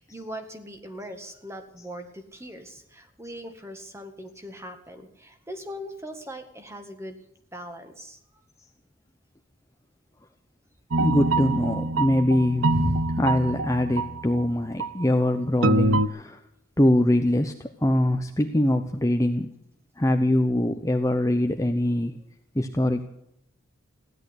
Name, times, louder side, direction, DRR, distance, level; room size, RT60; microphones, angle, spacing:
voice 1, 0.0-7.2 7.5-8.4, equal, 15° right, 6 dB, 1.8 m, -40 dB
sound 1, 10.9-14.4 14.8-15.0 15.6-16.1, right 2 dB, 75° right, 0.7 m, -25 dB
voice 2, 11.0-16.4 16.8-19.5 20.0-22.2 22.5-23.1, left 1 dB, 15° left, 5 dB, 0.8 m, -23 dB
16.0 x 11.0 x 8.2 m, 0.80 s
head